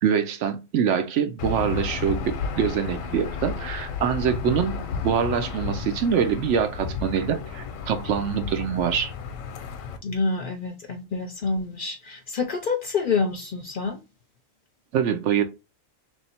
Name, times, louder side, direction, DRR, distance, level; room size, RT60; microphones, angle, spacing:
voice 1, 0.0-4.8 5.0-9.1 14.9-15.4, right 7 dB, 70° right, 0.9 m, -24 dB
Aircraft / Engine, 1.4-10.0, left 5 dB, 90° left, 1.1 m, -32 dB
voice 2, 10.0-14.0, left 4 dB, 55° left, 0.6 m, -27 dB
3.1 x 2.7 x 4.2 m
omnidirectional pair, 1.3 m